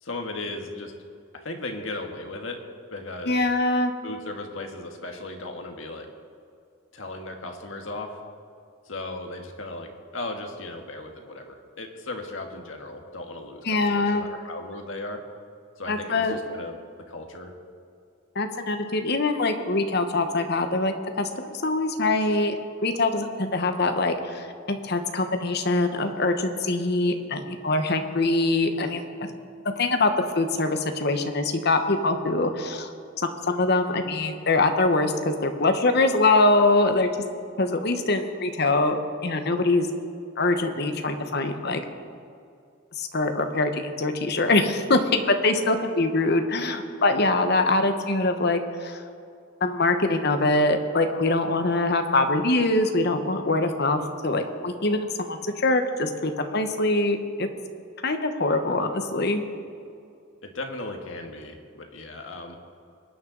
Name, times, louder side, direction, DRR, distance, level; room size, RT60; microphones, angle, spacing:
voice 1, 0.0-0.9 1.3-2.6 2.9-3.5 4.0-6.1 6.9-8.2 8.8-15.2 15.8-16.8 17.1-17.5 60.4-62.6, left 2 dB, 75° left, 3 dB, 1.5 m, -36 dB
voice 2, 3.3-3.9 13.6-14.2 15.9-16.4 18.3-22.6 22.8-29.3 29.8-32.9 33.2-37.1 37.6-39.0 39.2-39.9 40.4-41.8 43.0-49.0 49.6-57.5 58.0-59.4, left 2 dB, 55° left, 7 dB, 1.1 m, -23 dB
22.0 x 9.3 x 3.9 m, 2.5 s
head